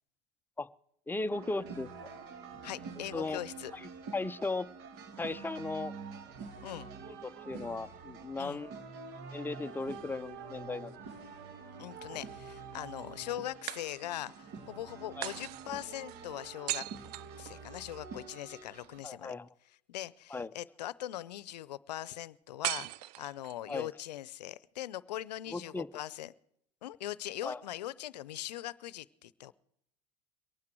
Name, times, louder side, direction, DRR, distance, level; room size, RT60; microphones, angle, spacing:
voice 1, 1.1-1.9 3.1-3.4 3.8-4.7 5.2-5.9 7.2-8.7 9.3-10.9 15.2-15.3 19.0-19.5 20.3-20.5 23.7-23.9 25.5-25.9 27.4-27.6, left 3 dB, 10° left, 13 dB, 0.6 m, -36 dB
sound 1, 1.3-19.0, right 5 dB, 55° right, 2.0 m, -47 dB
voice 2, 2.6-3.7 6.6-6.9 8.3-8.6 11.8-16.8 17.4-19.4 19.9-26.3 26.8-29.5, left 13 dB, 85° left, 20 dB, 0.6 m, -41 dB
sound 2, 10.6-11.6 13.7-14.4 15.2-18.1 22.6-23.7, right 17 dB, 75° right, 0.5 m, -40 dB
23.0 x 9.5 x 4.6 m, 0.74 s
hypercardioid pair, 90°, 21 cm